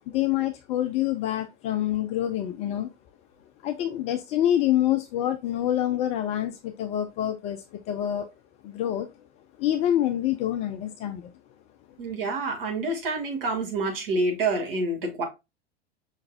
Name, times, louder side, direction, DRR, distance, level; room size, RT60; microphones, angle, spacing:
voice 1, 0.1-2.9 3.6-8.3 8.6-9.1 9.6-11.3, left 12 dB, 20° left, 0.3 m, -26 dB
voice 2, 12.0-15.2, right 2 dB, 55° right, 2.1 m, -27 dB
5.5 x 3.8 x 2.4 m
figure-of-eight pair, 85°, 33 cm